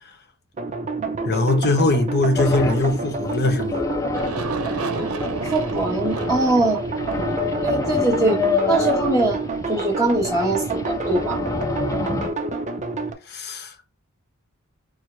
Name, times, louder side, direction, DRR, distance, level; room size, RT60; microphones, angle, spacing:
sound 1, 0.6-13.1, right 3 dB, 35° right, 0.6 m, -28 dB
voice 1, 1.2-3.8 13.3-13.9, left 2 dB, 50° left, 0.9 m, -21 dB
sound 2, 2.4-12.3, left 4 dB, 15° left, 0.3 m, -28 dB
Aircraft, 4.1-10.8, right 3 dB, 90° right, 0.6 m, -34 dB
voice 2, 5.4-6.8 7.6-8.4 8.7-9.4 9.7-11.4, right 2 dB, 15° right, 1.2 m, -22 dB
4.6 x 2.1 x 4.6 m
head